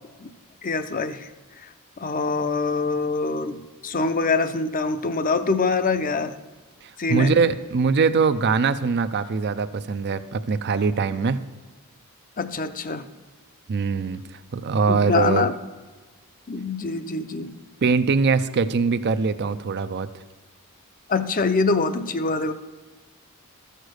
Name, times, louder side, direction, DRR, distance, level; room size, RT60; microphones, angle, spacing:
voice 1, 0.6-1.3 1.6-6.3 7.0-7.3 12.4-13.0 14.9-15.6 16.5-17.5 21.1-22.5, left 4 dB, 40° left, 11 dB, 0.6 m, -24 dB
voice 2, 6.8-11.4 13.7-14.2 14.5-15.5 17.8-20.1, right 5 dB, 50° right, 11 dB, 0.5 m, -22 dB
13.5 x 6.6 x 6.4 m, 1.3 s
head